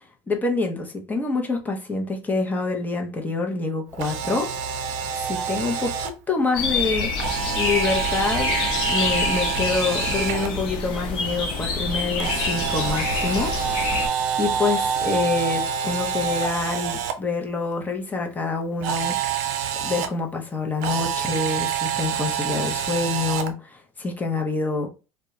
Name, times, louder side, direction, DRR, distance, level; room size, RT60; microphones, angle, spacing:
voice 1, 0.3-4.5 5.2-7.1 7.6-13.5 14.0-14.1 14.4-19.2 19.8-24.9, left 3 dB, 20° left, 0.6 m, -26 dB
Camera, 3.9-6.1 7.2-10.5 12.2-17.1 18.8-20.1 20.8-23.5, right 8 dB, 80° right, 0.4 m, -27 dB
sound 1, 6.5-14.1, left 4 dB, 60° left, 0.8 m, -26 dB
2.3 x 2.1 x 2.9 m
supercardioid pair, 110°, 9 cm